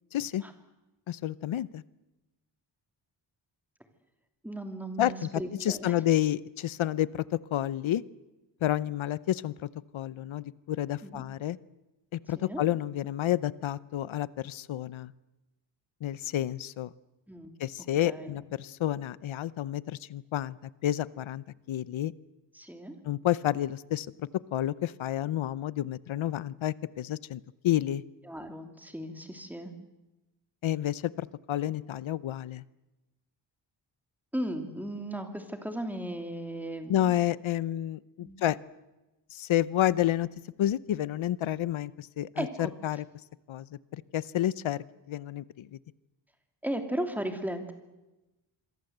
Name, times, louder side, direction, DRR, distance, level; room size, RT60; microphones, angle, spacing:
voice 1, 0.1-0.4 1.1-1.8 5.0-8.0 8.6-11.6 12.1-15.1 16.0-16.9 17.6-20.6 20.8-22.1 23.0-28.0 30.6-32.6 36.9-38.6 39.3-40.3 40.6-43.1 43.5-45.8, left 12 dB, 90° left, 18 dB, 0.8 m, -30 dB
voice 2, 4.4-5.9 11.0-11.2 12.4-12.6 17.3-17.6 18.0-18.4 22.5-22.9 28.2-29.7 34.3-37.1 38.2-38.4 42.4-42.7 46.6-47.7, right 1 dB, 5° right, 5 dB, 2.8 m, -36 dB
27.0 x 23.0 x 8.0 m, 1.0 s
wide cardioid pair, 145°, 46 cm